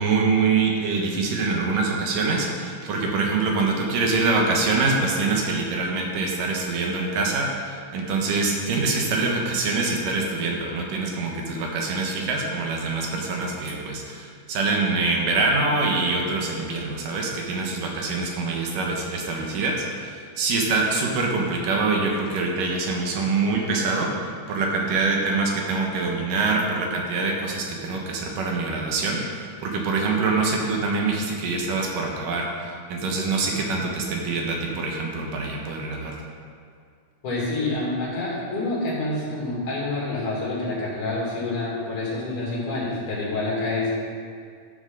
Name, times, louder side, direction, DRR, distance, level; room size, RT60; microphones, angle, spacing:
voice 1, 0.0-36.2, right 3 dB, 85° right, 0 dB, 3.0 m, -25 dB
voice 2, 37.2-43.9, left 2 dB, 70° left, -6 dB, 4.3 m, -27 dB
13.5 x 7.2 x 3.9 m, 2.2 s
omnidirectional pair, 3.8 m